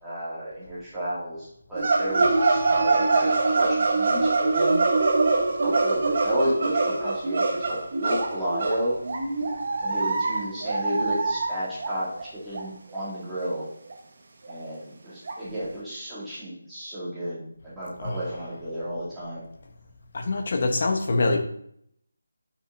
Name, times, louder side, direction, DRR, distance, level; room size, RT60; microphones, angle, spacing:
voice 1, 0.0-4.8 5.6-8.9 9.8-13.7 14.5-19.5, equal, ahead, -13 dB, 2.3 m, -32 dB
sound 1, 1.8-11.9 12.2-12.3 12.5-12.6 13.0-13.1 13.4-13.5 13.9-14.0 14.5-14.6 15.3-15.4, right 3 dB, 40° right, 1.1 m, -24 dB
voice 2, 20.1-21.4, left 3 dB, 40° left, 4 dB, 1.1 m, -24 dB
7.7 x 6.0 x 2.6 m, 0.68 s
figure-of-eight pair, 175°, 0 cm